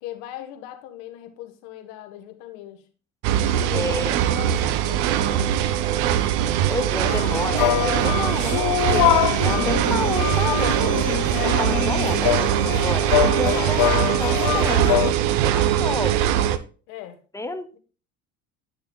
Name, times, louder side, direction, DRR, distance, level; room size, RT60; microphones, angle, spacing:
voice 1, 0.0-2.9 3.7-5.6 16.9-17.2, left 12 dB, 80° left, 1.5 m, -38 dB
sound 1, 3.2-16.6, right 11 dB, 85° right, 0.7 m, -22 dB
voice 2, 3.7-4.1 6.7-16.2 17.3-17.7, left 2 dB, 10° left, 0.8 m, -30 dB
sound 2, 7.1-15.1, left 13 dB, 65° left, 0.8 m, -24 dB
11.0 x 6.5 x 2.3 m
supercardioid pair, 95°, 34 cm